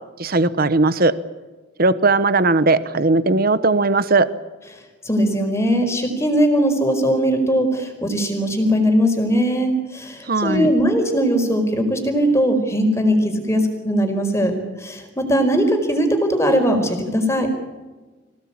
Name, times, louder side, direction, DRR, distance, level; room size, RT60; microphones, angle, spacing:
voice 1, 0.2-1.1 1.8-4.3 10.3-10.7, right 3 dB, 45° right, 14 dB, 1.1 m, -17 dB
voice 2, 5.0-14.5 14.8-17.5, equal, 15° left, 5 dB, 4.7 m, -19 dB
26.0 x 17.5 x 8.8 m, 1.2 s
head